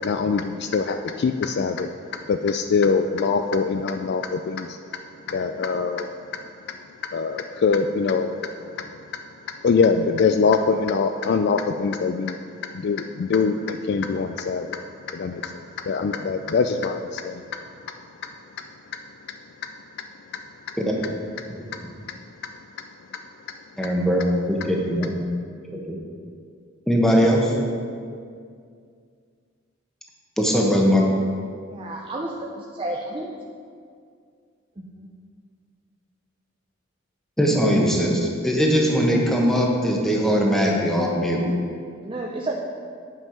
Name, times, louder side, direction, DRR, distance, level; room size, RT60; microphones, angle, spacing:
voice 1, 0.0-1.9 2.3-4.8 5.3-6.1 7.1-8.9 9.6-12.4 12.7-14.8 15.1-17.4, left 5 dB, 55° left, 7 dB, 0.3 m, -23 dB
voice 2, 23.8-25.2 25.7-26.0 26.9-27.5 30.4-31.1 37.4-41.5, equal, ahead, -2 dB, 1.1 m, -20 dB
voice 3, 31.7-33.3 34.8-35.1 42.0-42.5, right 1 dB, 25° right, -2 dB, 0.6 m, -31 dB
9.1 x 5.5 x 5.7 m, 2.2 s
head